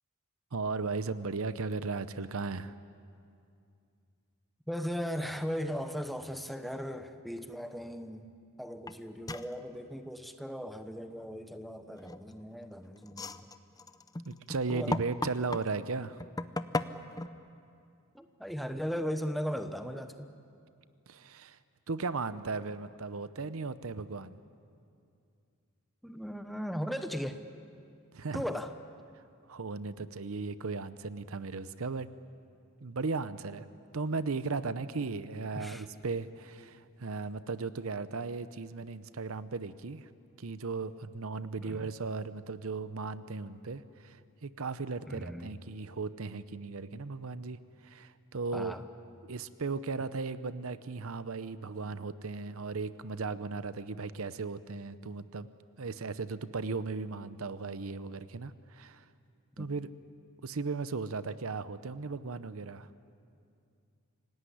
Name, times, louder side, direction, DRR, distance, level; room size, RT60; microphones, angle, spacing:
voice 1, 0.5-2.7 14.3-16.2 21.1-21.6 21.9-24.4 28.1-28.4 29.5-32.1 32.8-33.7 33.9-40.1 40.4-48.7 49.2-55.5 55.8-59.0 59.6-59.9 60.4-62.9, right 4 dB, 65° right, 14 dB, 0.7 m, -36 dB
voice 2, 4.7-8.3 8.6-13.4 14.7-15.0 18.1-20.3 26.0-27.4 28.3-28.7 35.5-35.8 41.6-41.9 45.1-45.6 48.5-48.8 59.6-59.7, equal, ahead, 8 dB, 0.9 m, -37 dB
sound 1, 8.9-9.0 9.3-9.5 12.0-12.4 13.0-15.7 16.2-17.3, left 2 dB, 15° left, 0.6 m, -35 dB
26.0 x 17.5 x 10.0 m, 2.4 s
head